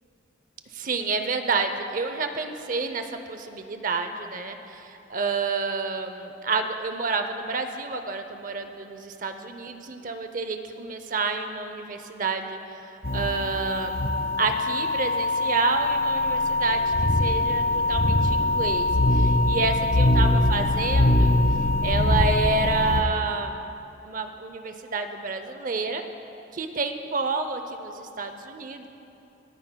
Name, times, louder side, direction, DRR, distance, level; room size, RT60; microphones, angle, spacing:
voice 1, 0.7-14.0 14.4-21.3 21.8-23.7 24.0-26.0 26.5-28.9, right 4 dB, 45° right, 7 dB, 0.6 m, -29 dB
sound 1, 13.0-23.0, left 1 dB, 55° left, 1.1 m, -22 dB
26.5 x 9.8 x 2.3 m, 2.9 s
head